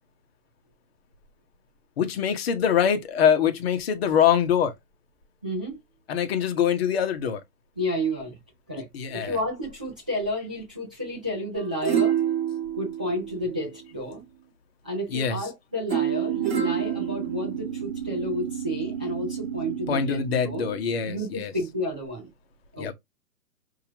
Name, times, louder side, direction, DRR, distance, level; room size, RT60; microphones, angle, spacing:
voice 1, 2.0-4.7 6.1-7.4 8.9-9.4 15.1-15.5 19.9-21.5 22.8-22.9, left 8 dB, 40° left, 1.2 m, -24 dB
voice 2, 5.4-5.8 7.8-8.4 8.7-12.2 12.8-14.2 14.8-20.6 21.1-22.3 22.7-22.9, equal, 5° right, 0.4 m, -31 dB
sound 1, 11.5-13.9 15.9-17.9 18.4-18.5, right 10 dB, 30° right, 1.5 m, -28 dB
sound 2, 16.3-21.3, right 8 dB, 45° right, 1.1 m, -34 dB
5.7 x 2.9 x 2.9 m
figure-of-eight pair, 135°, 48 cm